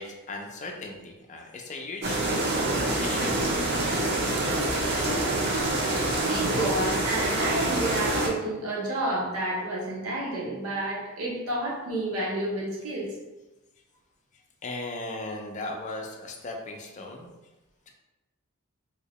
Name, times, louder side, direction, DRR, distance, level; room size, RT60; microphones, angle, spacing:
voice 1, 0.0-2.2 2.7-3.4 14.6-17.3, left 2 dB, 35° left, 1 dB, 0.4 m, -37 dB
sound 1, 2.0-8.3, right 2 dB, 50° right, 0.7 m, -26 dB
voice 2, 6.3-13.1, right 1 dB, 75° right, -4 dB, 1.0 m, -30 dB
3.1 x 2.8 x 2.9 m, 1.1 s
head